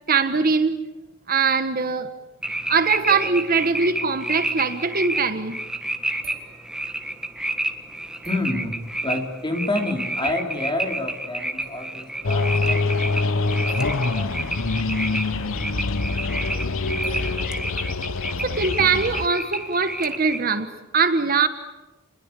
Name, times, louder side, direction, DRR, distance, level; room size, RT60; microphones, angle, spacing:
voice 1, 0.1-0.8 1.3-2.1 2.7-5.6 18.4-21.5, right 5 dB, 45° right, 10 dB, 1.4 m, -22 dB
sound 1, 2.4-20.4, right 1 dB, 5° right, 1.6 m, -30 dB
sound 2, 3.1-4.6 5.2-5.3 5.9-7.0 7.9-8.0 8.2-8.6 10.9-11.0 11.6-12.4 13.7-15.3 17.0-18.7 20.0-20.1, right 2 dB, 30° right, 5.2 m, -46 dB
voice 2, 8.3-8.8 9.0-14.5, left 2 dB, 25° left, 3 dB, 3.6 m, -29 dB
sound 3, 12.2-19.3, left 3 dB, 85° left, 1.1 m, -25 dB
29.0 x 21.5 x 8.4 m, 1.1 s
head